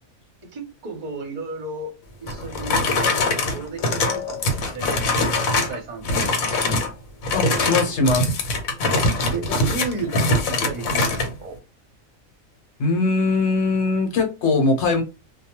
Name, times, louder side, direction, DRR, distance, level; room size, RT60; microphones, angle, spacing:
voice 1, 0.4-1.9 2.2-2.8 3.5-6.6 9.3-11.6, right 3 dB, 40° right, 0.7 m, -33 dB
sound 1, 2.3-5.8 6.0-6.9 7.2-11.3, left 2 dB, 75° left, 1.1 m, -22 dB
voice 2, 7.3-8.5 12.8-15.0, left 3 dB, 60° left, 1.0 m, -21 dB
2.2 x 2.2 x 2.9 m
omnidirectional pair, 1.4 m